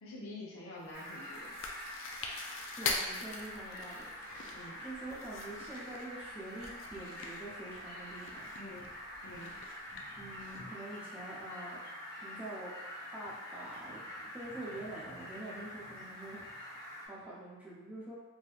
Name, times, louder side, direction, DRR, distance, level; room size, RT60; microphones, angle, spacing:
voice 1, 0.0-1.5 4.5-4.8 8.6-8.9 9.2-9.6, left 1 dB, 85° left, -5 dB, 0.9 m, -47 dB
Chewing mastication, 0.8-10.6, left 4 dB, 65° left, 0.4 m, -43 dB
Fowl, 0.9-17.1, equal, 45° left, 1.1 m, -46 dB
voice 2, 2.8-4.1 4.8-8.5 10.1-11.8 12.2-12.7 13.1-16.7 17.1-18.2, right 1 dB, 5° right, -7 dB, 0.6 m, -46 dB
3.3 x 2.8 x 2.4 m, 1.1 s
head